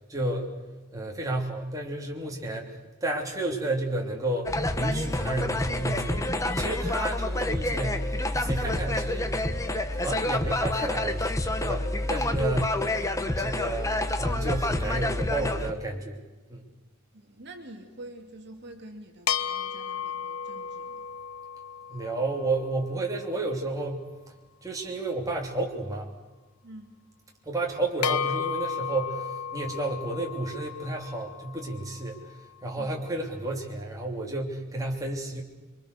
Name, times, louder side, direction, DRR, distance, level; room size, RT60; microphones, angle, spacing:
voice 1, 0.1-0.6 0.9-9.5 10.0-11.3 11.6-12.8 13.4-16.2 16.5-16.7 21.9-24.0 24.6-26.1 27.4-35.4, right 2 dB, 15° right, -1 dB, 3.2 m, -31 dB
sound 1, 4.5-15.7, left 1 dB, 15° left, 1.1 m, -28 dB
voice 2, 17.1-21.1 26.6-27.0 32.8-33.0, right 1 dB, 50° right, 3 dB, 2.6 m, -46 dB
sound 2, 19.3-22.9 28.0-32.4, left 7 dB, 80° left, 0.9 m, -34 dB
27.0 x 24.0 x 6.8 m, 1.2 s
head